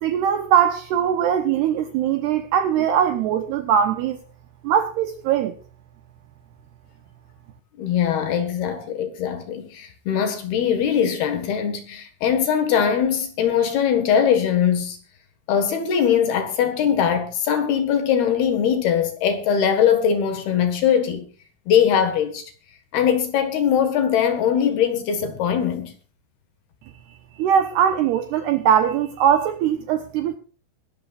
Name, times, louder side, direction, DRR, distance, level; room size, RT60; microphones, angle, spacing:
voice 1, 0.0-4.2 4.6-5.6 27.4-30.4, right 9 dB, 75° right, 2.5 m, -21 dB
voice 2, 7.8-15.0 15.5-21.3 21.7-22.5 22.9-25.9, left 8 dB, 60° left, 3.2 m, -21 dB
23.0 x 12.0 x 2.5 m
omnidirectional pair, 5.8 m